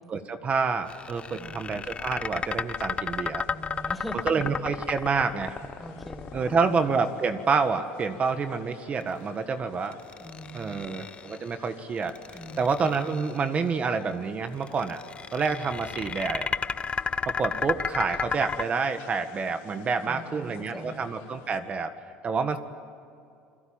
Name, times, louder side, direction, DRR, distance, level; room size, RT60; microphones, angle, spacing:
voice 1, 0.1-3.4 4.2-5.6 6.3-10.0 10.5-12.1 12.6-15.0 15.3-16.5 17.2-21.9 22.2-22.6, right 5 dB, 35° right, 9 dB, 1.6 m, -28 dB
sound 1, 0.9-7.1 9.9-11.5 12.0-13.4 14.6-18.6, left 6 dB, 25° left, 0.7 m, -33 dB
sound 2, 1.8-21.6, left 6 dB, 80° left, 4.6 m, -52 dB
voice 2, 3.5-4.4 5.8-6.8 10.2-10.9 12.3-12.7 20.0-21.0, equal, ahead, 4 dB, 5.2 m, -41 dB
29.0 x 22.5 x 9.0 m, 2.4 s
supercardioid pair, 100°, 4 cm